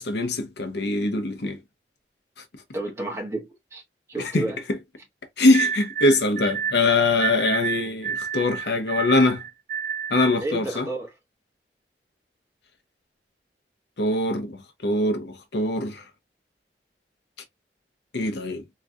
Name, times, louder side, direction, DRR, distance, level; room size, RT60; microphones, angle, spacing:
voice 1, 0.0-1.6 4.2-4.8 5.4-9.4 10.1-10.9 14.0-16.0 18.1-18.6, left 2 dB, 75° left, 0.9 m, -23 dB
voice 2, 2.7-3.8 4.1-4.6 10.4-11.1, right 2 dB, 15° right, 1.4 m, -31 dB
sound 1, 5.5-10.4, right 7 dB, 45° right, 0.3 m, -30 dB
3.7 x 3.1 x 2.3 m
head